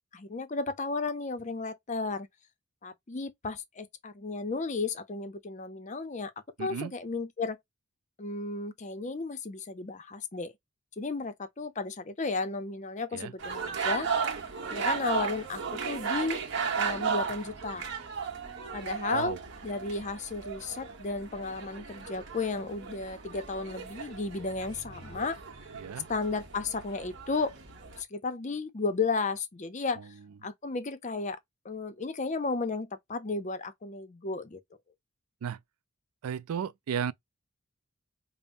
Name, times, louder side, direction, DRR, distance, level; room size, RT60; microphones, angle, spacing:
voice 1, 0.1-2.3 2.8-6.3 6.6-7.6 8.2-10.5 11.0-14.1 14.7-16.4 16.7-17.9 18.7-19.4 19.6-25.4 26.1-27.5 28.0-30.1 30.4-31.4 31.6-34.6, left 3 dB, 35° left, 0.5 m, -33 dB
voice 2, 6.6-6.9 13.1-13.3 19.1-19.4 25.7-26.1 35.4-35.6 36.2-37.1, right 7 dB, 85° right, 0.4 m, -34 dB
sound 1, 13.4-28.0, right 6 dB, 55° right, 1.1 m, -35 dB
5.2 x 2.0 x 2.6 m
head